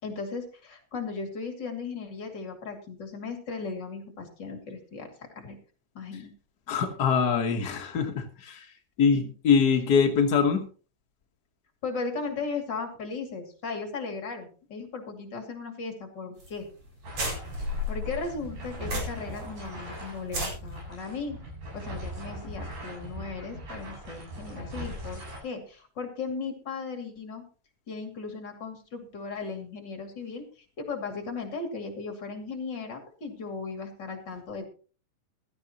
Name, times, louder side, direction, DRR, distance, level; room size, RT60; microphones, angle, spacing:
voice 1, 0.0-5.1 5.3-5.6 5.9-6.3 9.1-9.3 11.8-16.7 17.2-17.4 17.9-21.4 21.7-27.4 27.9-34.7, left 4 dB, 35° left, 4 dB, 2.9 m, -37 dB
voice 2, 6.7-8.6 9.0-10.6, left 6 dB, 60° left, 4 dB, 1.0 m, -23 dB
sound 1, 16.4-16.5 16.8-16.9 17.1-19.4 19.7-19.8 20.2-20.5, left 1 dB, 50° right, 6.0 m, -32 dB
sound 2, 17.0-25.4, equal, 75° right, 8.8 m, -40 dB
15.5 x 13.5 x 3.0 m, 0.38 s
omnidirectional pair, 3.9 m